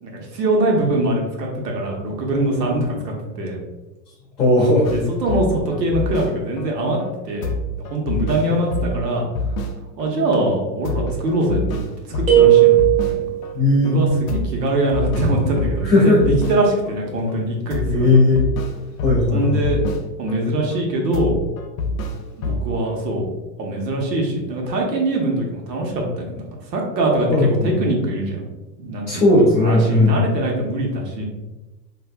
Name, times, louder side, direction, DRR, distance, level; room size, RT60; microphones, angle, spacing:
voice 1, 0.0-3.6 4.9-7.0 7.2-7.5 7.9-9.2 10.0-11.8 12.1-12.8 13.0-13.3 13.8-18.2 19.3-19.8 20.2-21.4 22.4-23.3 23.6-28.5 28.8-29.2 29.6-31.2, right 1 dB, 75° right, 0 dB, 1.0 m, -22 dB
voice 2, 4.4-4.9 8.5-8.6 13.5-14.0 15.8-16.2 17.9-18.4 19.0-19.6 27.3-27.7 29.1-30.2, left 2 dB, 5° left, -18 dB, 0.5 m, -16 dB
sound 1, 4.8-6.7 7.0-7.1 7.4-10.1 10.4-10.5 10.8-13.5 13.8-14.0 14.3-17.0 17.3-17.4 17.7-20.4 20.7-20.8 21.1-23.0, left 1 dB, 55° left, 0.5 m, -27 dB
sound 2, 12.3-13.5, right 13 dB, 35° right, 0.6 m, -14 dB
3.3 x 2.6 x 2.3 m, 1.1 s
supercardioid pair, 180°, 50 cm